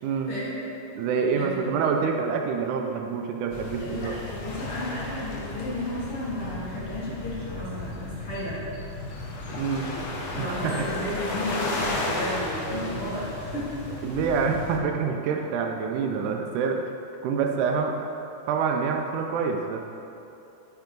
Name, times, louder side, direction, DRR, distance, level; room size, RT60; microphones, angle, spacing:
voice 1, 0.0-0.3 1.0-4.1 9.5-9.9 10.4-10.7 14.0-16.8 17.2-18.1 18.5-19.9, right 5 dB, 80° right, 3 dB, 2.0 m, -26 dB
voice 2, 1.3-1.8 3.8-8.7 10.4-13.8, left 1 dB, 50° left, -8 dB, 2.3 m, -33 dB
sound 1, 3.5-14.8, left 2 dB, 85° left, 1.1 m, -34 dB
Marimba xylophone, 10.7-12.8, left 2 dB, 60° right, 1.6 m, -46 dB
8.3 x 6.0 x 5.1 m, 2.8 s
omnidirectional pair, 3.7 m